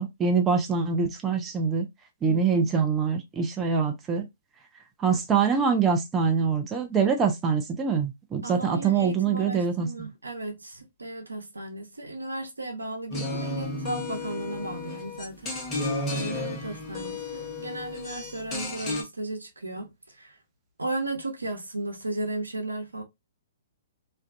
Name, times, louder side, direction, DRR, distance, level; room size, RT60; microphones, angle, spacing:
voice 1, 0.0-1.9 2.2-4.3 5.0-9.9, right 5 dB, 15° right, 0.5 m, -24 dB
voice 2, 2.3-2.7 8.4-15.8 16.1-20.4 20.8-23.0, right 2 dB, 85° right, 0.7 m, -35 dB
sound 1, 13.1-19.0, left 2 dB, 20° left, 0.8 m, -33 dB
2.5 x 2.2 x 2.4 m
figure-of-eight pair, 120°, 0 cm